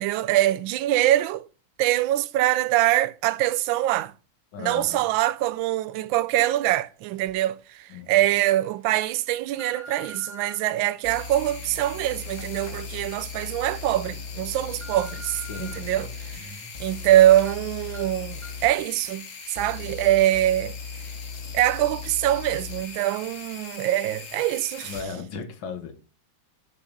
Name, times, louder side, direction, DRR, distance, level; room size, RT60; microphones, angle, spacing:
voice 1, 0.0-1.5 1.8-4.1 4.6-16.5 16.8-20.8 21.5-24.9, right 13 dB, 85° right, 1.3 m, -23 dB
voice 2, 4.5-5.1 7.9-8.1 15.5-16.7 24.8-25.9, left 5 dB, 85° left, 2.0 m, -37 dB
sound 1, 7.3-7.4 8.0-8.3 8.9-10.6 11.2-13.5 13.9-14.0 14.5-15.8 16.2-17.1 17.4-17.5 17.9-18.0 18.4-18.7 19.0-19.1, left 1 dB, 10° left, 1.6 m, -45 dB
sound 2, 11.0-25.0, left 5 dB, 45° left, 1.4 m, -38 dB
7.4 x 5.1 x 6.6 m
omnidirectional pair, 2.1 m